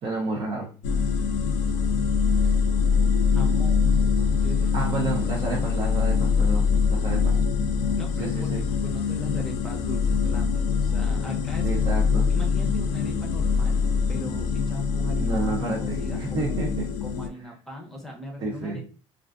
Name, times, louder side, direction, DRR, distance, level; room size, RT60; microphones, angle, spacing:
voice 1, 0.0-0.7 4.7-7.4 8.2-8.6 11.6-12.3 15.2-16.9 17.4-17.5 18.4-18.8, right 2 dB, 50° right, -3 dB, 0.7 m, -30 dB
sound 1, 0.8-17.3, left 5 dB, 85° left, 0.4 m, -24 dB
voice 2, 3.3-4.0 4.3-4.9 7.1-7.5 8.0-8.5 8.8-11.7 12.3-13.8 14.1-16.7 17.0-18.8, equal, 5° left, 1 dB, 0.8 m, -39 dB
2.4 x 2.4 x 2.4 m, 0.37 s
cardioid pair, 105°, 12 cm